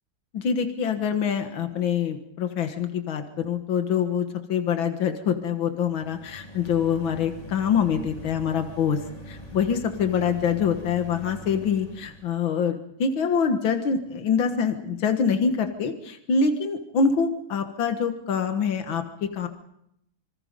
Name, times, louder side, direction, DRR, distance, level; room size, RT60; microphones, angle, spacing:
voice 1, 0.3-9.0 9.3-19.5, left 6 dB, 80° left, 7 dB, 2.3 m, -25 dB
sound 1, 5.8-12.4, equal, 20° left, 2.7 m, -43 dB
26.0 x 25.0 x 5.3 m, 0.77 s
omnidirectional pair, 2.1 m